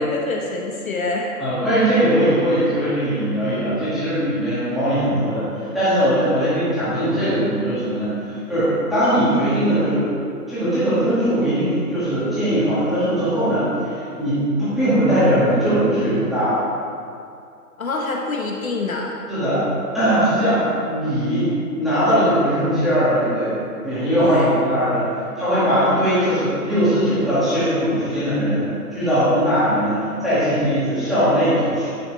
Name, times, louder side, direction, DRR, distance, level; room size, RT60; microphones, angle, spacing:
voice 1, 0.0-1.3 6.3-6.5 17.8-19.1 20.4-20.8 24.2-24.6, left 3 dB, 60° left, 0 dB, 1.1 m, -26 dB
voice 2, 1.4-10.0 10.5-16.6 19.3-19.6 19.9-20.6 20.9-21.5 21.8-28.6 28.9-31.9, equal, ahead, -15 dB, 1.9 m, -20 dB
10.0 x 6.3 x 3.3 m, 2.5 s
hypercardioid pair, 160°, 48 cm